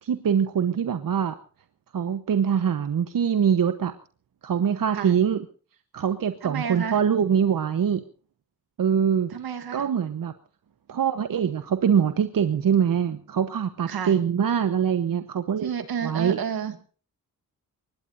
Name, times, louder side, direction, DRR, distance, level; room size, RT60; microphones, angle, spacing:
voice 1, 0.0-1.4 1.9-3.9 4.4-5.4 5.9-8.0 8.8-9.3 9.7-10.3 10.9-15.7 16.0-16.4, right 7 dB, 65° right, 10 dB, 1.1 m, -23 dB
voice 2, 6.4-7.0 9.3-9.9 13.9-14.2 15.6-16.8, right 7 dB, 85° right, 8 dB, 2.1 m, -31 dB
23.5 x 20.0 x 2.7 m, 0.40 s
cardioid pair, 65°, 36 cm